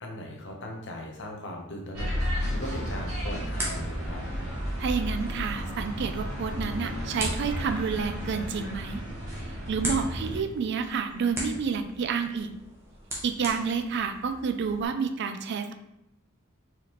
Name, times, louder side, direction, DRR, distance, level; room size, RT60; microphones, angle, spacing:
voice 1, 0.0-4.2 10.2-10.4, left 1 dB, 55° left, 1 dB, 0.8 m, -39 dB
sound 1, 1.9-10.4, equal, 80° right, 1.7 m, -33 dB
sound 2, 2.7-14.9, equal, 10° right, 0.8 m, -40 dB
voice 2, 4.8-9.0 9.7-12.6 13.2-15.7, right 6 dB, 50° right, 8 dB, 0.3 m, -29 dB
4.6 x 3.4 x 3.0 m, 0.84 s
head